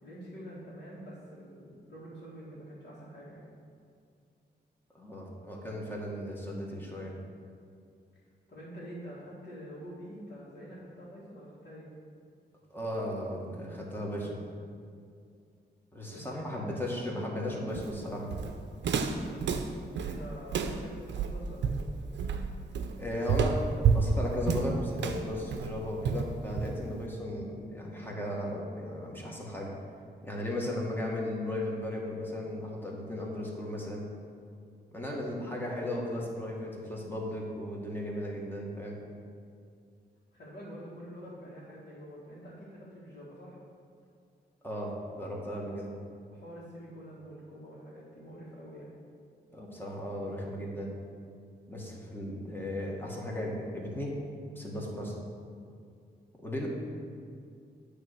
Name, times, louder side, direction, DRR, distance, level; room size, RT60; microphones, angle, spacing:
voice 1, 0.0-3.5 8.5-11.9 16.0-17.1 19.9-21.8 40.3-43.6 46.3-48.9, equal, 65° left, -9 dB, 1.9 m, -46 dB
voice 2, 4.9-7.1 12.7-14.4 15.9-18.3 23.0-29.7 30.2-34.1 34.9-39.0 44.6-45.9 49.5-50.9 51.7-54.2 54.5-55.2 56.4-56.7, left 1 dB, 10° left, -3 dB, 1.6 m, -36 dB
Walk footsteps, 17.7-27.0, right 5 dB, 80° right, 0.5 m, -30 dB
8.7 x 3.3 x 6.6 m, 2.3 s
cardioid pair, 75°, 18 cm